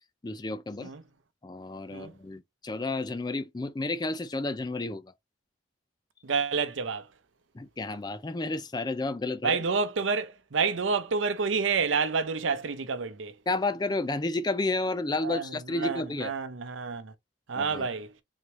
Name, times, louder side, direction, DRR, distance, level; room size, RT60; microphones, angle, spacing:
voice 1, 0.2-0.9 1.4-5.1 7.5-9.6 13.5-16.3 17.5-17.9, left 2 dB, 20° left, 0.4 m, -31 dB
voice 2, 6.2-7.1 9.4-13.3 15.2-17.1 17.5-18.1, right 5 dB, 80° right, 0.6 m, -29 dB
4.0 x 3.2 x 3.0 m
head